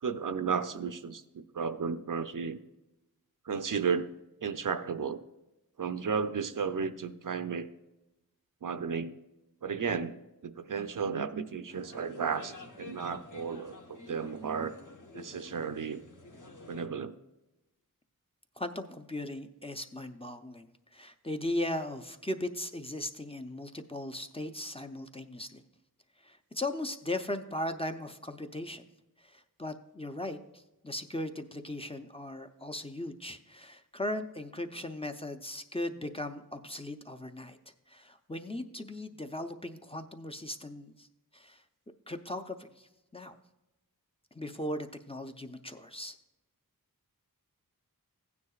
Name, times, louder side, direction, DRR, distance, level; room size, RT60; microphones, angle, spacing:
voice 1, 0.0-2.6 3.4-4.1 4.4-5.2 5.8-7.7 8.6-9.1 9.6-10.2 10.4-14.7 15.1-16.0 16.7-17.1, right 6 dB, 60° right, 11 dB, 0.5 m, -33 dB
sound 1, 11.7-16.9, left 2 dB, 55° left, 1.1 m, -49 dB
voice 2, 18.6-25.6 26.2-28.8 29.2-37.6 37.9-41.1 41.3-41.6 42.1-43.4 44.3-46.2, left 1 dB, 15° left, 6 dB, 0.6 m, -38 dB
15.5 x 9.5 x 2.4 m, 1.0 s
wide cardioid pair, 65°, 36 cm